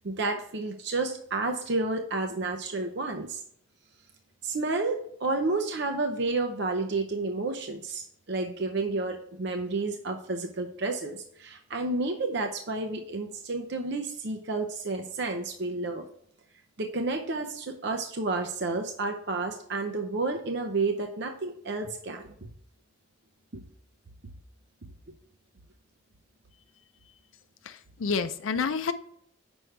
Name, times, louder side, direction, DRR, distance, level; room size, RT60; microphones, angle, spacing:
voice 1, 0.0-3.4 4.4-16.0 16.8-22.5 23.5-23.6, right 3 dB, 60° right, 4 dB, 0.7 m, -31 dB
voice 2, 27.7-28.9, left 5 dB, 85° left, 9 dB, 0.5 m, -29 dB
7.7 x 6.2 x 3.3 m, 0.66 s
head